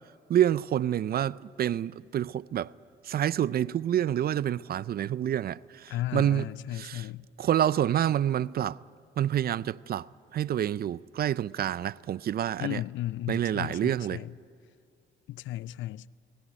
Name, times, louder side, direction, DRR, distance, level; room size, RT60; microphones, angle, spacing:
voice 1, 0.3-2.7 3.1-5.6 6.1-6.5 6.7-7.1 7.4-8.8 9.2-10.0 10.3-12.8 13.3-14.2, right 11 dB, 50° right, 0.4 m, -27 dB
voice 2, 5.9-7.3 12.6-14.3 15.3-16.1, left 14 dB, 75° left, 0.5 m, -35 dB
19.5 x 17.0 x 10.0 m
cardioid pair, 90°, 20 cm